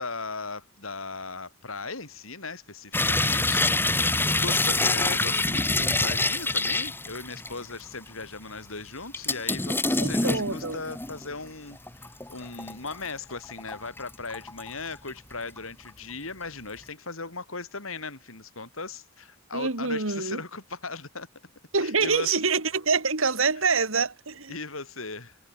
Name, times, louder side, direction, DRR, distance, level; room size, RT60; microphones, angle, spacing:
voice 1, 0.0-21.3 21.8-22.4 24.5-25.4, left 4 dB, 75° left, 5.2 m, -38 dB
sound 1, 2.9-7.7 8.1-8.2 9.1-11.3 11.8-13.1 13.5-14.7 15.1-15.6 15.9-16.0, left 2 dB, 10° left, 1.5 m, -26 dB
voice 2, 10.0-10.8 19.5-20.4 21.7-24.5, right 4 dB, 70° right, 2.7 m, -26 dB
head